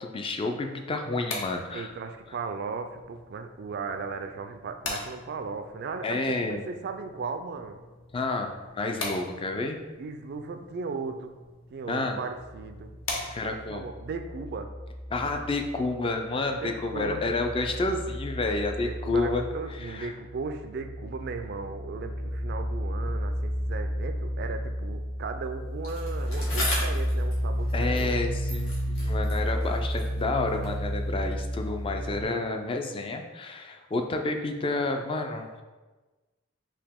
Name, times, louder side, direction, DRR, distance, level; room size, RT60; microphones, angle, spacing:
voice 1, 0.0-1.9 6.0-6.6 8.1-9.8 11.9-12.2 13.3-13.9 15.1-19.4 19.7-20.1 27.7-28.7 29.0-35.6, left 3 dB, 25° left, 4 dB, 0.3 m, -30 dB
sound 1, 0.9-13.8, left 2 dB, 75° left, 0.9 m, -42 dB
voice 2, 1.7-7.8 10.0-11.3 11.7-12.9 13.4-14.7 16.5-17.2 18.8-28.1, right 4 dB, 50° right, 7 dB, 0.3 m, -36 dB
sound 2, 12.3-16.2 16.4-32.2, equal, 55° left, 1.4 m, -32 dB
Bicycle, 25.8-28.2 28.5-30.8 31.6-31.7, left 1 dB, 90° left, 1.4 m, -37 dB
4.9 x 2.8 x 3.5 m, 1.2 s
head